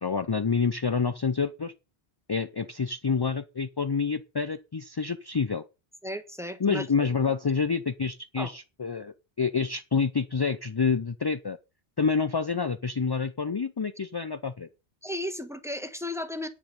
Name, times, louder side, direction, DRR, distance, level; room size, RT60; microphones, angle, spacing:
voice 1, 0.0-1.7 2.3-5.6 6.6-11.6 12.0-14.7, left 5 dB, 35° left, 0.4 m, -28 dB
voice 2, 6.0-7.1 8.4-8.5 15.0-16.5, left 1 dB, 5° right, 1.2 m, -34 dB
9.6 x 9.3 x 5.3 m
omnidirectional pair, 1.1 m